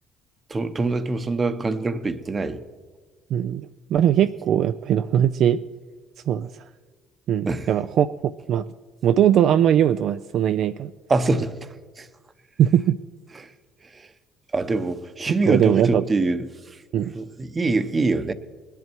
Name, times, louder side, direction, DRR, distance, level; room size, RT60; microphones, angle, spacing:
voice 1, 0.5-2.6 7.5-7.7 11.1-11.6 12.0-12.1 13.4-13.5 13.8-14.1 14.5-18.3, right 3 dB, 25° right, 0.8 m, -25 dB
voice 2, 3.3-5.6 6.3-6.7 7.3-8.7 9.0-10.9 12.6-13.0 15.5-16.0 16.9-17.1, right 10 dB, 65° right, 0.3 m, -20 dB
20.0 x 10.5 x 4.6 m
cardioid pair, 105°, 0 cm